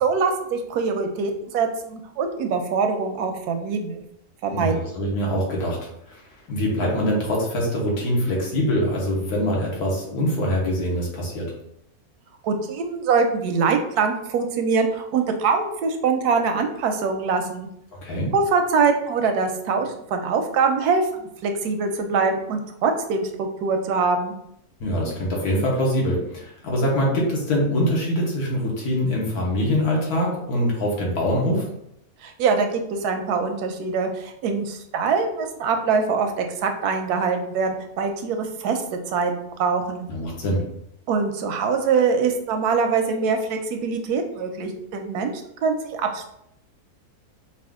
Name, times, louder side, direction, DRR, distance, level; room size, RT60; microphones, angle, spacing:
voice 1, 0.0-4.0 4.4-4.7 12.4-17.7 18.3-24.3 32.2-40.1 41.1-46.3, right 5 dB, 90° right, 5 dB, 1.1 m, -23 dB
voice 2, 4.5-5.8 6.1-6.2 6.5-11.5 17.9-18.3 24.8-31.7 40.1-40.6, equal, 80° left, -3 dB, 1.6 m, -24 dB
4.2 x 2.3 x 3.6 m, 0.77 s
omnidirectional pair, 1.6 m